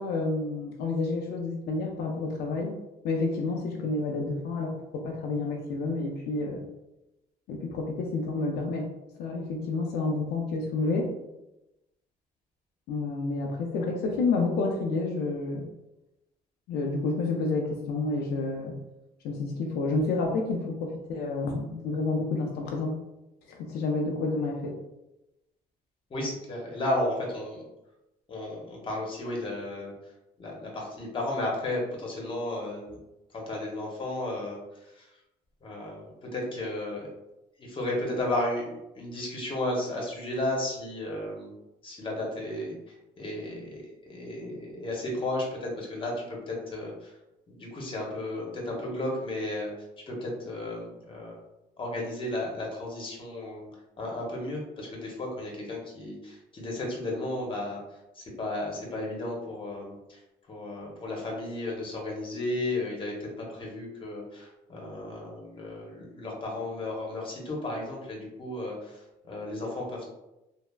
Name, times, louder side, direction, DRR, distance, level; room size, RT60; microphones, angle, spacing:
voice 1, 0.0-2.7 3.0-6.6 7.5-8.9 9.2-11.1 12.9-15.6 16.7-18.7 19.2-22.9 23.5-24.7, left 3 dB, 75° left, 0 dB, 0.4 m, -29 dB
voice 2, 26.1-27.7 28.3-29.9 30.4-33.0 33.3-35.1 35.6-37.1 37.6-38.7 38.9-41.5 41.8-42.7 43.2-47.1 47.5-49.7 50.1-51.4 51.8-53.7 54.0-57.8 58.1-60.2 60.5-70.0, left 1 dB, 30° left, -2 dB, 0.8 m, -34 dB
3.2 x 2.0 x 2.3 m, 0.94 s
cardioid pair, 110°, 17 cm